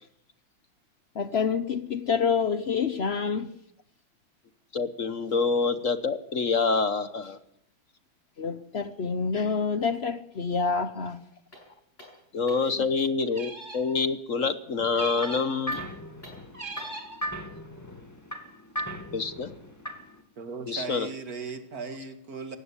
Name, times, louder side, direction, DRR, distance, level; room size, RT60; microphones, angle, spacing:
voice 1, 1.1-3.5 8.4-11.2, left 5 dB, 65° left, 0.6 m, -27 dB
voice 2, 4.7-7.4 12.3-15.8 19.1-19.5 20.7-21.1, left 4 dB, 50° left, 1.1 m, -26 dB
sound 1, 11.5-12.8 15.6-17.1, left 1 dB, 25° left, 7.6 m, -50 dB
sound 2, 13.3-14.0 14.9-15.6 16.5-17.2, right 3 dB, 20° right, 3.4 m, -40 dB
sound 3, 14.8-20.2, equal, 10° left, 2.2 m, -38 dB
voice 3, 20.4-22.6, right 4 dB, 45° right, 2.5 m, -37 dB
18.5 x 15.5 x 9.8 m
omnidirectional pair, 2.4 m